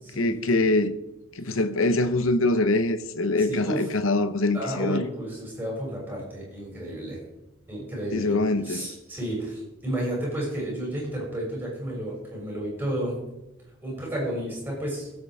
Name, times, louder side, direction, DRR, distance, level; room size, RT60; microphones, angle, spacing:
voice 1, 0.1-1.0 1.4-5.0 8.1-8.9, left 2 dB, 70° left, 0.8 m, -24 dB
voice 2, 3.4-3.9 4.5-7.2 7.7-13.1 13.8-15.1, right 1 dB, 10° right, 6.4 m, -32 dB
21.5 x 8.8 x 4.8 m
head